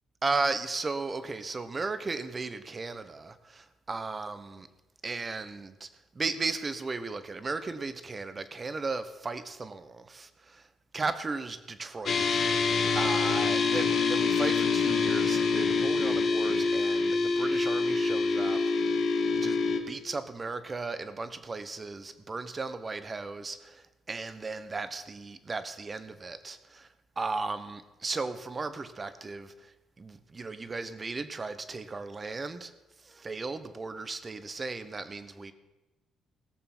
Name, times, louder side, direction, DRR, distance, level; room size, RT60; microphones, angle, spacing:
voice 1, 0.2-4.7 5.0-5.9 6.1-10.7 10.9-12.4 12.9-19.0 19.3-26.9 27.2-32.7 33.0-35.5, right 3 dB, 30° right, 11 dB, 1.1 m, -36 dB
sound 1, 12.1-19.8, left 4 dB, 55° left, 1.7 m, -26 dB
17.5 x 6.8 x 6.1 m, 1.1 s
cardioid pair, 90°, 0 cm